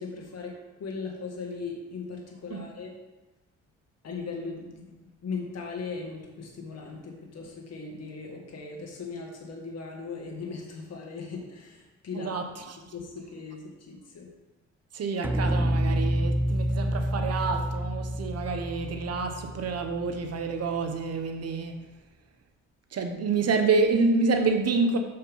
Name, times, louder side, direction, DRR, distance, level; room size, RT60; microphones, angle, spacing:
voice 1, 0.0-2.9 4.0-12.4 12.9-14.3, left 4 dB, 55° left, 0 dB, 2.1 m, -38 dB
voice 2, 12.1-12.8 14.9-21.8 22.9-25.0, right 4 dB, 55° right, 5 dB, 1.0 m, -28 dB
sound 1, 15.2-20.5, equal, 5° right, 0.4 m, -28 dB
6.7 x 5.6 x 5.6 m, 1.1 s
cardioid pair, 90°, 30 cm